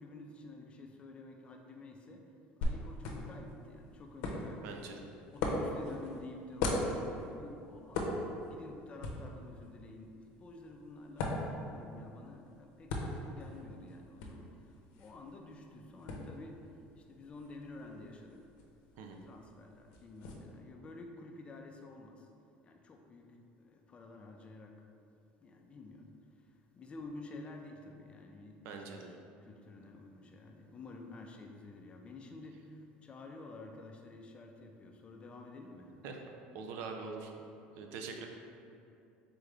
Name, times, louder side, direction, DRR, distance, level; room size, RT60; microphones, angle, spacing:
voice 1, 0.0-2.2 2.6-8.1 8.5-14.5 15.0-16.6 17.1-18.4 19.3-22.2 22.6-23.3 23.6-24.7 25.4-26.1 26.8-29.1 29.5-32.7 33.0-35.9, left 2 dB, 25° left, 3 dB, 0.4 m, -50 dB
sound 1, 2.6-20.3, left 2 dB, 75° left, 0.6 m, -41 dB
voice 2, 4.6-5.1 19.0-19.2 28.6-29.1 36.0-36.2 36.5-37.3 37.8-38.3, right 4 dB, 70° right, 3 dB, 0.5 m, -43 dB
3.8 x 3.7 x 3.3 m, 2.6 s
cardioid pair, 130°, 4 cm